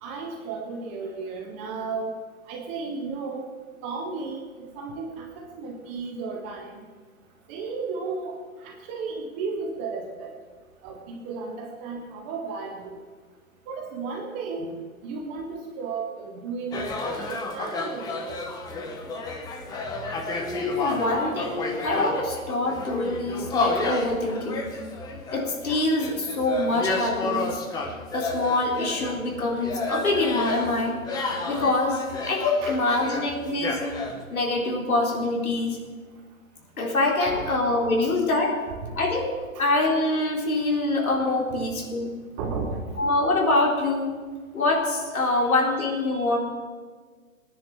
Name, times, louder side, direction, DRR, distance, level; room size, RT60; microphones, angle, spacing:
voice 1, 0.0-2.1 2.5-3.5 3.8-6.8 7.5-8.3 8.6-10.3 10.8-13.0 13.7-14.7 15.0-18.4 19.9-20.0 32.6-32.8 37.3-37.6 38.0-38.1 38.8-38.9 39.5-39.6 41.5-41.6 42.4-42.8 45.3-46.4, right 4 dB, 10° right, 1 dB, 0.5 m, -34 dB
sound 1, 16.7-34.2, left 3 dB, 10° left, 0.9 m, -31 dB
voice 2, 20.3-24.7 25.3-27.6 28.1-31.0 31.4-33.8 34.3-35.8 36.8-38.6 38.9-42.1 43.0-44.1 44.5-46.4, left 2 dB, 85° left, 0 dB, 4.1 m, -25 dB
17.0 x 9.9 x 7.3 m, 1.5 s
hypercardioid pair, 145°, 42 cm